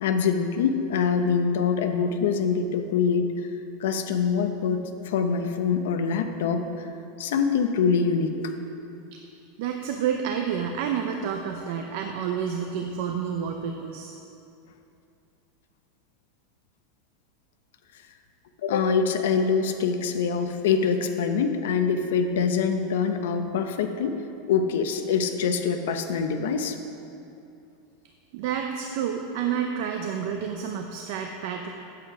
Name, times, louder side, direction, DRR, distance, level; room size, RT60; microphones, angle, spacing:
voice 1, 0.0-3.3 3.8-6.9 7.2-8.5 18.6-24.2 24.5-26.8, left 6 dB, 80° left, 6 dB, 0.7 m, -24 dB
voice 2, 9.6-14.2 28.3-31.7, right 7 dB, 55° right, 4 dB, 0.5 m, -29 dB
8.6 x 7.7 x 4.8 m, 2.7 s
supercardioid pair, 175°, 0 cm